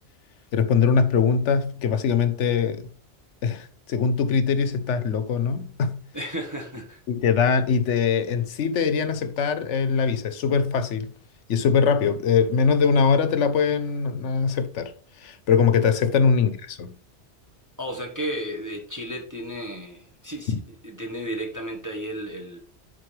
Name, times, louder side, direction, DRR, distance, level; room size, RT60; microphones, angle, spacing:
voice 1, 0.5-2.9 3.4-6.0 7.1-11.1 11.5-14.9 15.2-16.9 20.5-20.6, left 6 dB, 85° left, 1.1 m, -22 dB
voice 2, 6.1-7.0 16.0-16.2 17.8-22.6, right 1 dB, 15° right, 1.1 m, -33 dB
10.5 x 4.3 x 3.3 m
omnidirectional pair, 1.2 m